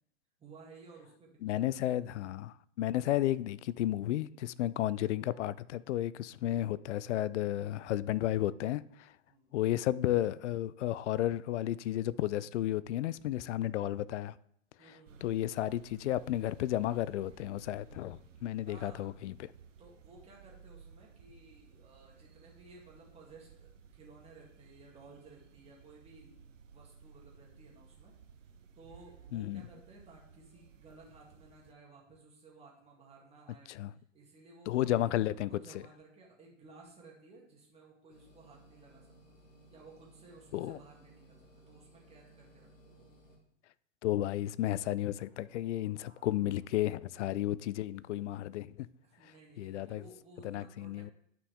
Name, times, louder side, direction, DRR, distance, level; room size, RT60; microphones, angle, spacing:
voice 1, 0.4-2.2 9.3-9.6 14.8-15.3 18.7-19.2 19.8-26.4 26.7-28.2 28.7-33.8 34.1-39.4 39.7-43.3 49.0-51.1, right 3 dB, 15° right, 2.1 m, -57 dB
voice 2, 1.4-9.1 9.5-14.4 15.2-19.5 29.3-29.6 33.7-33.9 34.7-35.6 40.5-40.8 44.0-48.9 49.2-50.0 50.4-51.1, left 13 dB, 65° left, 0.5 m, -33 dB
sound 1, 15.1-31.7, right 6 dB, 75° right, 1.0 m, -57 dB
sound 2, 38.1-43.4, right 1 dB, 80° left, 2.5 m, -60 dB
sound 3, 45.1-47.5, left 1 dB, ahead, 3.0 m, -66 dB
9.4 x 5.9 x 3.5 m
hypercardioid pair, 120°, 39 cm